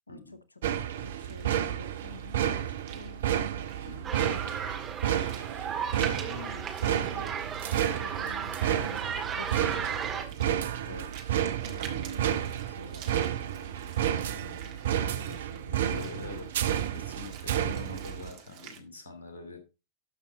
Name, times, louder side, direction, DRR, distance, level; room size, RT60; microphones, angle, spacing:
voice 1, 0.1-0.4 3.8-4.1 10.9-11.1 15.9-16.5 16.9-19.6, left 3 dB, 65° left, 2.6 m, -44 dB
sound 1, 0.6-18.3, right 10 dB, 60° right, 0.8 m, -31 dB
voice 2, 0.7-3.2 4.7-4.8 5.9-9.0 9.3-10.5 11.6-16.5, left 3 dB, 85° left, 0.9 m, -48 dB
Walk footsteps / Splash splatter, 1.0-18.8, right 9 dB, 45° right, 1.7 m, -52 dB
sound 2, 4.0-10.2, right 7 dB, 25° right, 1.8 m, -35 dB
12.5 x 5.7 x 3.9 m
figure-of-eight pair, 90°, 0 cm